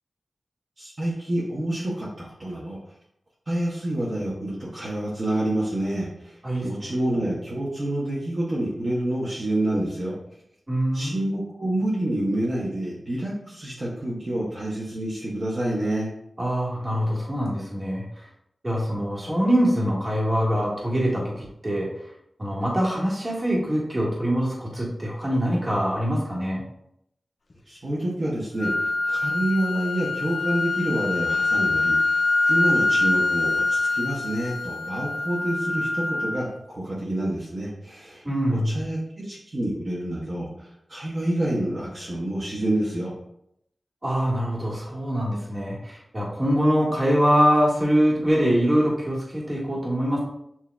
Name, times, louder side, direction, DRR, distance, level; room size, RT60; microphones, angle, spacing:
voice 1, 0.8-2.8 3.5-10.1 10.9-16.1 27.7-32.2 32.5-38.2 38.5-43.1, right 1 dB, 55° right, -7 dB, 1.1 m, -28 dB
voice 2, 10.7-11.1 16.4-18.2 18.6-21.9 22.4-26.6 38.2-38.7 44.0-50.2, equal, 30° right, -4 dB, 1.6 m, -24 dB
sound 1, 28.6-36.6, left 3 dB, 60° left, 0.4 m, -24 dB
7.3 x 2.7 x 2.3 m, 0.77 s
cardioid pair, 55°, 0 cm